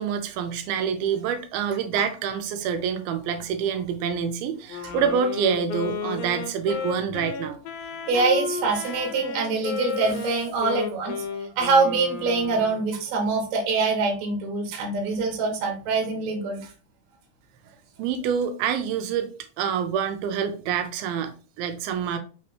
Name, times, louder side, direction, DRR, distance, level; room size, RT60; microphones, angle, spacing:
voice 1, 0.0-7.6 18.0-19.3 19.6-22.2, right 7 dB, 90° right, 2.5 m, -27 dB
Wind instrument woodwind instrument, 4.7-12.9, left 5 dB, 80° left, 2.4 m, -33 dB
voice 2, 8.1-16.7, right 4 dB, 65° right, 2.1 m, -24 dB
5.8 x 2.9 x 3.2 m
omnidirectional pair, 4.3 m